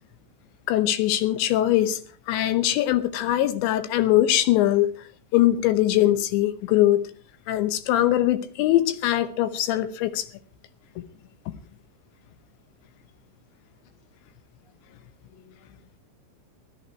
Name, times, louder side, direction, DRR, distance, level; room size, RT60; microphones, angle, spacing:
voice 1, 0.7-2.0 2.3-4.9 5.3-7.1 7.5-10.3, left 13 dB, 80° left, 11 dB, 3.2 m, -22 dB
voice 2, 14.6-16.0, left 8 dB, 60° left, 7 dB, 1.3 m, -59 dB
17.0 x 12.0 x 4.5 m, 0.43 s
omnidirectional pair, 5.3 m